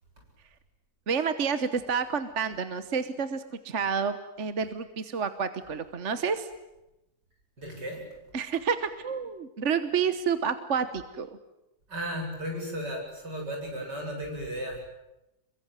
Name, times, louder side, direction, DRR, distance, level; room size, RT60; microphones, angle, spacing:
voice 1, 1.1-6.5 8.3-11.3, right 6 dB, 45° right, 11 dB, 1.3 m, -29 dB
voice 2, 7.6-8.0 11.9-14.8, equal, 60° right, 1 dB, 8.7 m, -35 dB
27.5 x 23.0 x 9.2 m, 0.93 s
omnidirectional pair, 2.1 m